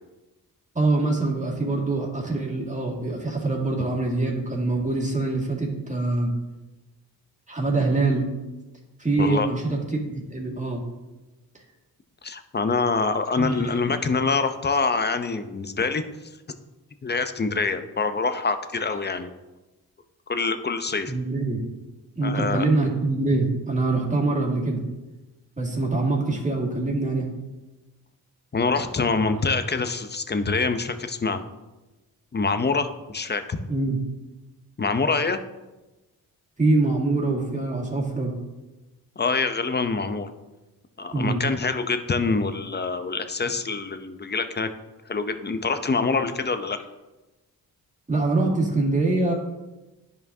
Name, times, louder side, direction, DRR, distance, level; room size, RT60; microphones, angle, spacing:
voice 1, 0.8-6.3 7.5-8.3 9.0-10.8 13.4-13.7 21.1-21.6 22.2-24.8 25.6-27.3 33.7-34.0 36.6-38.3 41.1-41.4 48.1-49.3, right 2 dB, 20° right, -2 dB, 2.0 m, -24 dB
voice 2, 12.2-16.0 17.0-19.3 20.3-21.1 22.2-22.7 28.5-31.4 32.3-33.4 34.8-35.4 39.2-40.3 41.0-44.7 45.1-46.8, left 4 dB, 25° left, 9 dB, 0.6 m, -25 dB
10.5 x 5.1 x 2.7 m, 1.1 s
cardioid pair, 60°, 40 cm